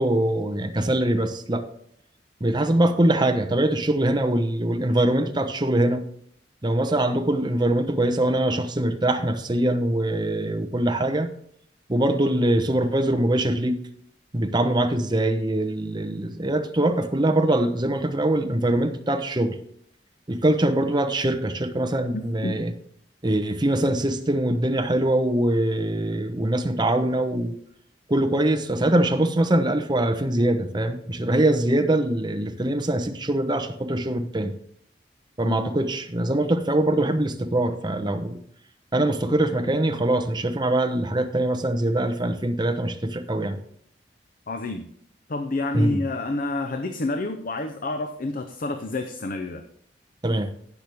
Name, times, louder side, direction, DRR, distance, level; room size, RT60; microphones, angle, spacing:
voice 1, 0.0-1.6 2.4-6.0 6.6-11.3 11.9-13.8 14.3-19.6 20.3-22.7 23.2-27.6 28.1-34.5 35.4-38.4 38.9-43.6 45.7-46.0 50.2-50.5, right 1 dB, 25° right, 6 dB, 0.9 m, -23 dB
voice 2, 22.1-22.6 35.4-35.8 44.5-44.9 45.3-49.6, left 2 dB, 50° left, 7 dB, 0.7 m, -29 dB
16.5 x 6.2 x 3.5 m, 0.65 s
head